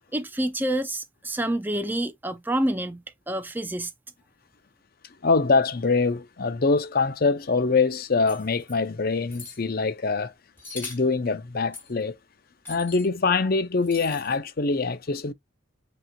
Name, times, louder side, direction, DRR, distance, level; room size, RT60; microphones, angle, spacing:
voice 1, 0.1-3.0 3.3-3.9, right 1 dB, 10° right, 0.5 m, -27 dB
voice 2, 5.2-10.3 10.7-12.1 12.7-15.3, left 4 dB, 45° left, 0.6 m, -24 dB
sound 1, 8.3-8.8 9.3-9.6 10.6-11.1 11.7-11.9 12.6-13.1 13.8-14.4, left 3 dB, 10° left, 3.1 m, -41 dB
7.6 x 3.0 x 2.3 m
head